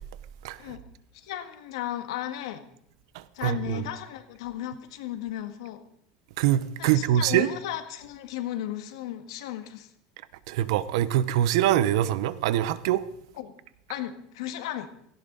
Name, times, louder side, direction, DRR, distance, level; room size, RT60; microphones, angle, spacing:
voice 1, 1.1-2.7 3.3-5.8 6.8-9.9 13.4-13.5 13.9-14.9, left 12 dB, 90° left, 1.8 m, -35 dB
voice 2, 3.1-3.8 6.4-7.5 10.5-13.0, right 12 dB, 80° right, 0.9 m, -24 dB
17.5 x 16.0 x 4.0 m
cardioid pair, 155°, 3 cm